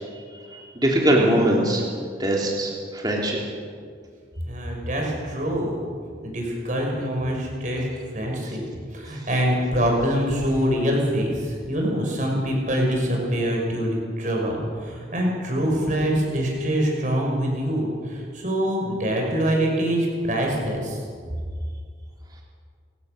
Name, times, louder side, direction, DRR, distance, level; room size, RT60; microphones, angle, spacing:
voice 1, 0.5-1.8 2.2-3.4, right 1 dB, 20° right, -1 dB, 3.2 m, -21 dB
voice 2, 4.4-5.8 6.2-8.6 8.9-21.0, equal, 40° right, 0 dB, 5.9 m, -24 dB
29.0 x 16.5 x 6.8 m, 2.1 s
head